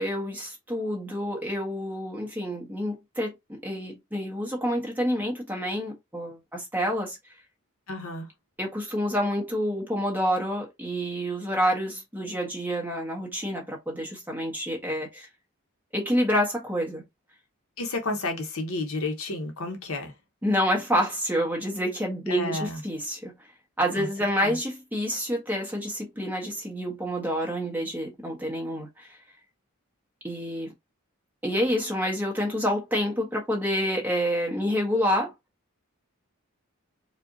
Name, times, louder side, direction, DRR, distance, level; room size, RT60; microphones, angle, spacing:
voice 1, 0.0-7.2 8.6-15.3 15.9-17.0 20.4-23.3 23.8-29.1 30.2-30.7 31.4-35.3, equal, 10° right, 1.3 m, -28 dB
voice 2, 7.9-8.3 17.8-20.1 22.3-22.8 24.0-24.6, left 2 dB, 70° left, 1.0 m, -32 dB
4.7 x 2.4 x 2.6 m
head